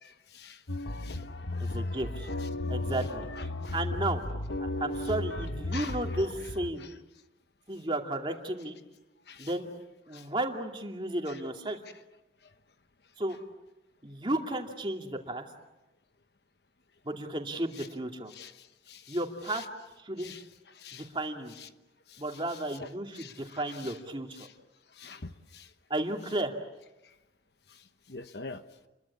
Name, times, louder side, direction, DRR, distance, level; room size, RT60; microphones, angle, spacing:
voice 1, 0.0-0.6 0.9-1.2 1.5-2.5 2.8-3.8 5.7-6.0 6.8-6.9 9.3-9.5 10.1-10.2 11.3-11.4 17.8-17.9 18.3-19.2 19.5-19.7 20.2-20.4 20.7-21.1 21.6-21.7 22.1-22.9 23.1-24.0 24.4-24.5 25.0-25.7 28.1-28.6, left 5 dB, 60° left, 10 dB, 1.1 m, -47 dB
sound 1, 0.7-6.7, left 2 dB, 80° left, 1.5 m, -34 dB
voice 2, 1.6-2.3 2.7-4.2 4.6-6.9 7.7-8.8 9.4-9.7 10.1-11.8 13.2-13.4 14.0-15.5 17.0-18.3 19.1-19.6 20.0-20.3 20.9-21.5 22.2-24.5 25.9-26.5, right 1 dB, 25° right, 3 dB, 2.5 m, -33 dB
29.5 x 22.5 x 8.6 m, 1.0 s
head